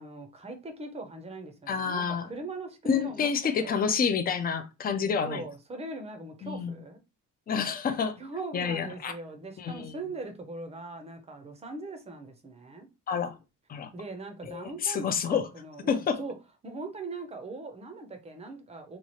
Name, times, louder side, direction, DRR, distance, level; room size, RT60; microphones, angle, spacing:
voice 1, 0.0-3.3 3.6-3.7 5.2-7.0 8.2-12.9 13.9-16.3 16.6-19.0, right 2 dB, 20° right, 0.6 m, -40 dB
voice 2, 1.7-2.3 2.9-5.4 6.4-6.8 7.5-8.2 8.5-9.1 9.6-9.9 13.1-13.4 13.7-13.9 14.4-15.5 15.9-16.2, left 6 dB, 25° left, 0.4 m, -28 dB
3.0 x 2.4 x 4.1 m
cardioid pair, 170°, 35 cm